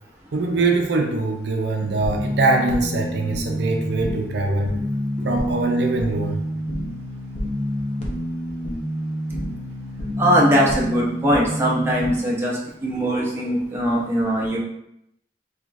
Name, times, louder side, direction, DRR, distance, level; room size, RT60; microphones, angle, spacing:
voice 1, 0.3-4.7 5.2-6.4, right 3 dB, 65° right, 2 dB, 0.5 m, -22 dB
sound 1, 1.8-12.1, equal, 35° left, 0.6 m, -28 dB
voice 2, 10.2-14.6, equal, 15° right, -4 dB, 0.6 m, -21 dB
3.5 x 3.4 x 2.4 m, 0.80 s
head